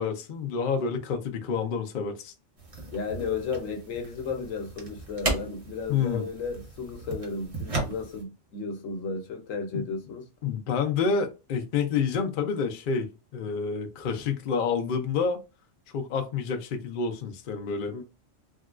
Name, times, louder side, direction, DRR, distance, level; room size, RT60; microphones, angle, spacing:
voice 1, 0.0-2.3 5.9-6.2 9.7-9.8 10.4-15.4 15.9-18.0, left 5 dB, 55° left, 0.6 m, -28 dB
sound 1, 2.6-8.2, right 2 dB, 30° right, 0.8 m, -36 dB
voice 2, 2.9-10.3 17.9-18.0, left 4 dB, 90° left, 1.1 m, -34 dB
3.6 x 2.2 x 2.3 m
omnidirectional pair, 1.3 m